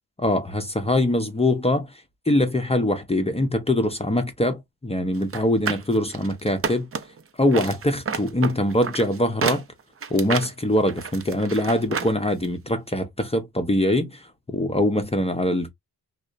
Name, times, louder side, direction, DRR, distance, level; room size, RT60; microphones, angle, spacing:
voice 1, 0.2-6.9 7.4-9.7 10.1-15.7, left 1 dB, 15° left, 0.6 m, -23 dB
sound 1, 5.2-7.2 7.5-12.1 12.4-12.5, right 6 dB, 35° right, 0.5 m, -30 dB
2.7 x 2.1 x 2.5 m
cardioid pair, 60°, 39 cm